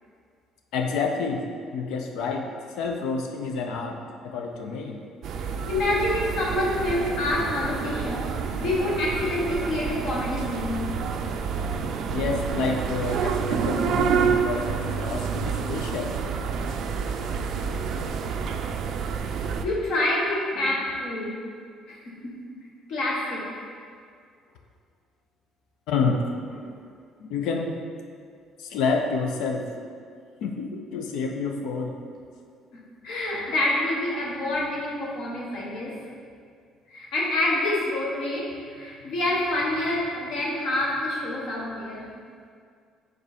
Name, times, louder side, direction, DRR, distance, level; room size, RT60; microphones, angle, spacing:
voice 1, 0.7-2.5 2.7-4.0 4.2-5.0 12.1-16.1 25.9-26.2 27.2-27.8 28.6-29.7 30.4-32.0, left 4 dB, 80° left, 3 dB, 0.6 m, -28 dB
sound 1, 5.2-19.6, right 6 dB, 50° right, 0.3 m, -28 dB
voice 2, 5.3-8.3 8.6-10.8 16.8-16.9 17.8-17.9 19.6-21.4 21.9-22.3 22.9-23.6 33.0-36.0 36.9-42.1, left 1 dB, 55° left, -3 dB, 1.3 m, -27 dB
5.2 x 4.0 x 4.9 m, 2.1 s
cardioid pair, 175°, 0 cm